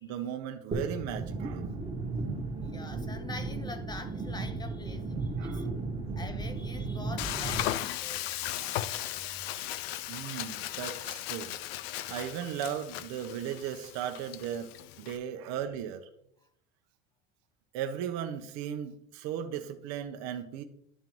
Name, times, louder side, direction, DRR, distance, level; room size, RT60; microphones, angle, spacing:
voice 1, 0.0-1.7 5.4-5.7 8.6-8.9 10.1-11.5 12.1-14.7 15.0-16.1 17.7-20.6, right 9 dB, 60° right, 0.8 m, -36 dB
sound 1, 0.7-7.7, right 3 dB, 20° right, 1.3 m, -35 dB
voice 2, 2.6-5.7 6.2-8.9 9.1-9.5, left 2 dB, 15° left, 0.7 m, -45 dB
Frying (food), 7.2-15.2, left 14 dB, 80° left, 0.5 m, -36 dB
11.0 x 3.8 x 3.0 m
supercardioid pair, 110°, 31 cm